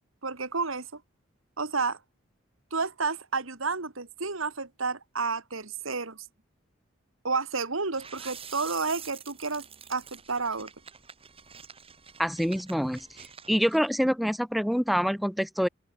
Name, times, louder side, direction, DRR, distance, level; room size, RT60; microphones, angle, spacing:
voice 1, 0.2-1.0 1.6-2.0 2.7-6.3 7.2-9.6 9.9-10.7, right 4 dB, 85° right, 2.4 m, -31 dB
sound 1, 8.0-13.8, right 7 dB, 30° right, 4.4 m, -47 dB
voice 2, 12.2-13.0 13.5-15.7, equal, ahead, 0.5 m, -26 dB
open air
head